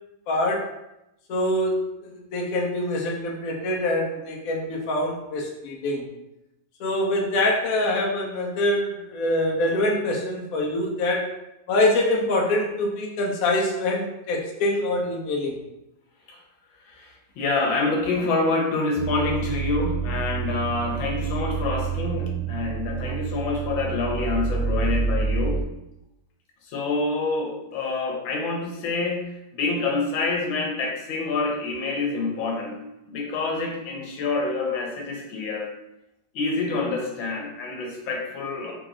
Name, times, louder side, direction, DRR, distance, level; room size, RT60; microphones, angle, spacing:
voice 1, 0.3-0.7 1.3-6.1 6.8-11.3 11.7-15.6, left 1 dB, 60° left, -1 dB, 1.1 m, -25 dB
voice 2, 16.8-25.6 26.6-32.8 33.1-35.7 36.3-38.7, left 3 dB, 90° left, 0 dB, 1.6 m, -27 dB
sound 1, 19.0-25.6, right 6 dB, 70° right, 0.9 m, -28 dB
4.1 x 2.9 x 3.7 m, 0.90 s
omnidirectional pair, 2.1 m